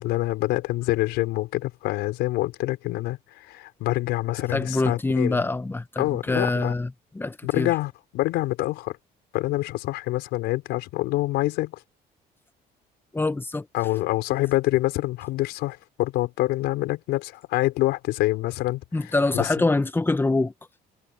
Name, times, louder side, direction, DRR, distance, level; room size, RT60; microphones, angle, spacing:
voice 1, 0.0-5.4 6.0-6.7 7.4-9.0 9.3-11.8 13.7-18.8 19.3-19.5, left 18 dB, 90° left, 4.9 m, -26 dB
voice 2, 4.5-7.7 13.1-13.7 18.9-20.5, left 2 dB, 10° left, 1.3 m, -25 dB
cardioid pair, 110°, 17 cm